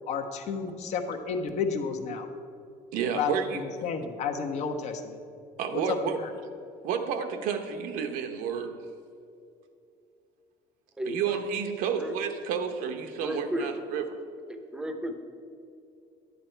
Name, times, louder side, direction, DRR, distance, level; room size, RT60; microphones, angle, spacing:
voice 1, 0.0-2.3 3.1-5.2 5.7-6.0, left 5 dB, 55° left, 5 dB, 0.9 m, -31 dB
voice 2, 2.9-3.6 5.6-6.2 6.8-8.7 11.1-14.2, right 7 dB, 75° right, 6 dB, 1.0 m, -30 dB
voice 3, 11.0-11.4 11.9-12.1 13.2-13.7 14.5-15.2, equal, 5° right, 6 dB, 0.8 m, -33 dB
10.5 x 9.4 x 4.5 m, 2.5 s
cardioid pair, 160°, 14 cm